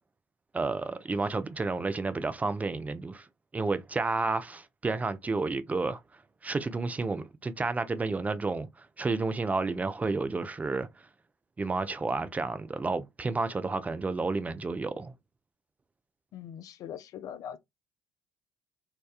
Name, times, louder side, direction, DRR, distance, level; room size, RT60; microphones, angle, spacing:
voice 1, 0.5-3.3 3.5-6.0 6.4-10.9 11.6-15.1, right 3 dB, 20° right, 0.4 m, -31 dB
voice 2, 16.3-17.6, left 9 dB, 55° left, 0.4 m, -41 dB
2.8 x 2.2 x 2.3 m
hypercardioid pair, 60°, 7 cm